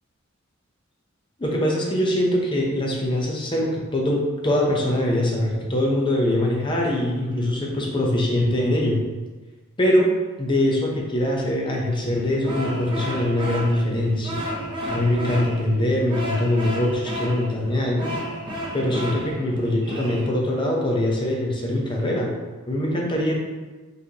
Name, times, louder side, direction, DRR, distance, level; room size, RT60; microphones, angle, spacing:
voice 1, 1.4-9.0 9.8-10.1 10.4-14.4 14.9-18.1 18.7-22.3 22.7-23.4, left 1 dB, 25° left, -2 dB, 0.7 m, -23 dB
sound 1, 11.9-20.3, equal, 25° right, 0.8 m, -32 dB
4.4 x 3.3 x 2.9 m, 1.2 s
head